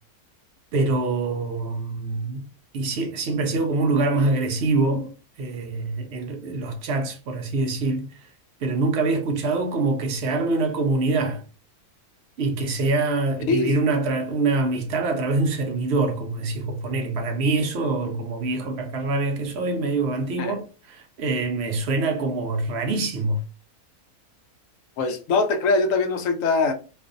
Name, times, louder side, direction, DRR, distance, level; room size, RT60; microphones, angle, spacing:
voice 1, 0.7-2.4 2.7-5.1 5.4-8.3 8.6-11.4 12.4-23.4, right 3 dB, 70° right, 0.6 m, -25 dB
voice 2, 13.5-13.8 20.4-20.6 25.0-26.7, left 3 dB, 70° left, 0.9 m, -22 dB
2.5 x 2.3 x 2.5 m
omnidirectional pair, 1.6 m